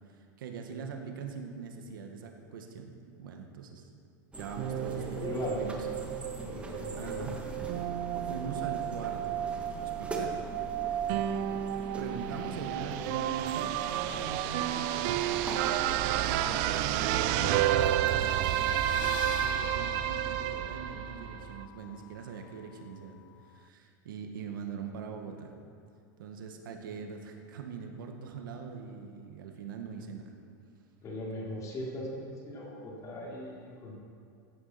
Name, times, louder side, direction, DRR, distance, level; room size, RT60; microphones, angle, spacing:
voice 1, 0.1-3.8 4.4-5.8 7.0-7.4 8.3-9.4 9.8-10.4 10.8-11.0 12.0-17.9 18.8-23.2 23.5-25.5 26.2-30.2, right 5 dB, 90° right, 3 dB, 1.9 m, -42 dB
sound 1, 4.3-19.1, right 2 dB, 10° right, 1.8 m, -42 dB
sound 2, 4.6-21.7, right 12 dB, 55° right, 0.6 m, -31 dB
voice 2, 4.7-5.6 6.5-7.3 31.0-33.9, left 1 dB, 30° left, -3 dB, 3.8 m, -39 dB
sound 3, 18.2-23.6, left 16 dB, 75° left, 0.4 m, -44 dB
15.5 x 9.7 x 6.0 m, 2.4 s
supercardioid pair, 135°, 11 cm